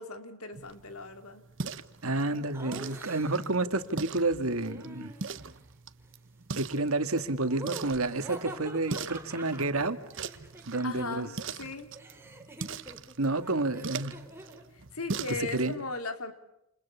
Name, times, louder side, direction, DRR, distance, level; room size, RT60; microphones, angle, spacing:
voice 1, 0.0-1.4 10.8-11.9 14.9-16.3, left 3 dB, 80° left, 3.3 m, -38 dB
sound 1, 0.5-15.8, right 4 dB, 60° right, 1.3 m, -42 dB
voice 2, 2.0-5.1 6.6-10.0 10.7-11.3 13.2-14.2 15.4-15.8, right 2 dB, 75° right, 2.1 m, -30 dB
Laughter, 2.5-3.6 4.6-5.6 7.4-11.3 11.6-14.7, right 1 dB, 10° right, 3.8 m, -46 dB
29.5 x 28.5 x 7.1 m
head